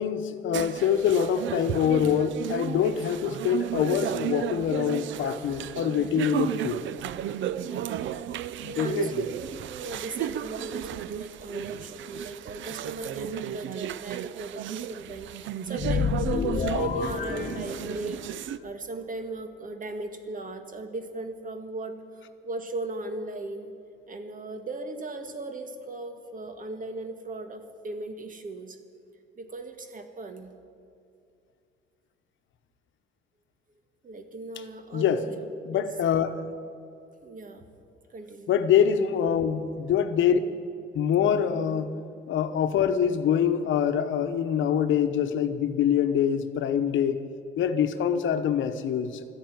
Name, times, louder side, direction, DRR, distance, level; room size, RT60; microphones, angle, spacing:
voice 1, 0.0-6.8 8.8-9.3 34.9-35.3 35.7-36.4 38.5-40.4 40.9-42.0 42.3-47.2 47.6-49.3, left 8 dB, 75° left, 9 dB, 1.0 m, -25 dB
sound 1, 0.5-18.6, right 11 dB, 70° right, 0.5 m, -34 dB
voice 2, 7.7-18.2 18.6-23.7 24.1-28.8 29.4-30.5 34.0-35.9 37.2-37.7 38.1-38.5, right 2 dB, 40° right, 7 dB, 1.8 m, -37 dB
sound 2, 15.8-18.3, left 6 dB, 50° left, 1.1 m, -29 dB
13.0 x 10.5 x 9.3 m, 2.4 s
cardioid pair, 90°, 20 cm